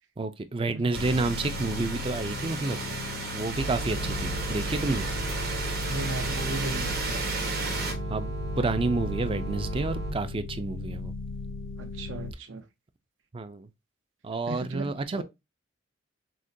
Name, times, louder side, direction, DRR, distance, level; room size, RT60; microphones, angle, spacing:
voice 1, 0.2-2.8 3.3-5.1 8.1-11.1 13.3-13.7 14.2-15.2, right 3 dB, 25° right, 0.4 m, -30 dB
sound 1, 0.9-7.9, right 3 dB, 50° right, 1.2 m, -34 dB
sound 2, 1.0-12.3, left 4 dB, 75° left, 0.3 m, -37 dB
sound 3, 3.5-10.1, right 3 dB, 90° right, 1.2 m, -35 dB
voice 2, 5.9-7.2 11.8-12.6 14.5-14.9 15.2-15.3, right 2 dB, 75° right, 0.7 m, -36 dB
6.2 x 2.2 x 2.6 m
head